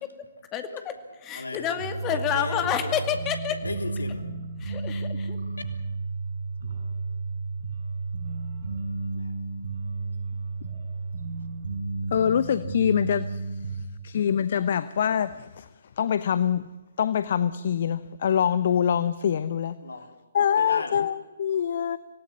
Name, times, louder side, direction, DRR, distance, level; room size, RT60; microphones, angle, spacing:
voice 1, 0.5-3.6 4.6-5.4, left 9 dB, 20° left, 2.2 m, -29 dB
voice 2, 1.3-3.1 3.5-4.3 9.1-9.3 11.4-11.5 19.8-20.2 20.5-21.1, left 3 dB, 70° left, 3.3 m, -37 dB
sound 1, 1.8-13.8, right 3 dB, 65° right, 6.4 m, -32 dB
voice 3, 12.1-13.4 13.7-15.7 16.0-16.7 17.0-19.8 20.3-22.0, left 8 dB, 50° left, 0.8 m, -24 dB
26.0 x 18.5 x 8.6 m
figure-of-eight pair, 135°, 0 cm